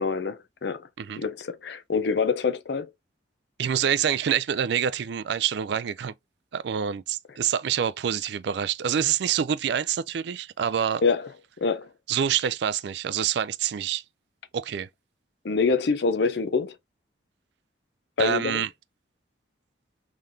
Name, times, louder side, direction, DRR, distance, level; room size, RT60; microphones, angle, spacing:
voice 1, 0.0-0.9 1.2-2.9 11.0-11.3 11.6-11.9 15.4-16.8 18.2-18.6, left 4 dB, 65° left, 0.5 m, -25 dB
voice 2, 3.6-6.1 6.5-11.0 12.1-14.0 14.5-14.9 18.2-18.7, right 8 dB, 65° right, 0.3 m, -26 dB
3.8 x 3.2 x 2.6 m
head